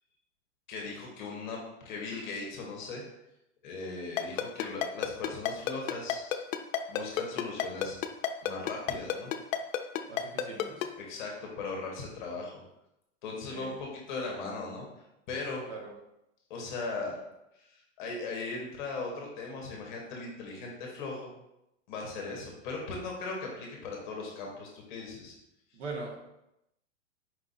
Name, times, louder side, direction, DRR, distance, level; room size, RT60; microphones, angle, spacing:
voice 1, 0.7-3.0 3.6-6.4 6.9-8.0 8.4-9.3 11.0-12.5 13.2-15.6 16.5-17.2 17.5-21.3 21.9-25.4, left 3 dB, 35° left, -1 dB, 0.9 m, -38 dB
Ringtone, 4.2-10.9, left 11 dB, 80° left, 0.5 m, -29 dB
voice 2, 10.1-10.9 13.5-13.7 15.7-15.9 25.7-26.2, right 3 dB, 60° right, -1 dB, 1.2 m, -41 dB
4.7 x 2.4 x 3.9 m, 0.87 s
supercardioid pair, 170°, 40 cm